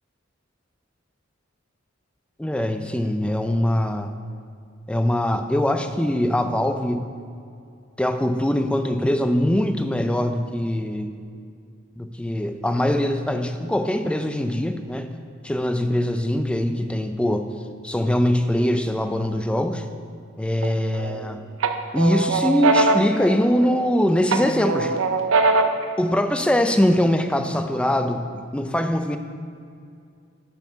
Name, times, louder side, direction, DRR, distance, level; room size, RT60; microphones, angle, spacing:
voice 1, 2.4-4.1 4.9-7.1 8.0-11.1 12.0-15.1 15.4-17.5 17.8-19.9 20.4-21.4 21.9-25.0 26.0-29.2, left 1 dB, 5° left, 7 dB, 0.4 m, -22 dB
sound 1, 20.6-21.2 21.6-23.9 24.3-25.9, right 3 dB, 90° right, 0.5 m, -22 dB
6.8 x 6.2 x 5.8 m, 2.4 s
head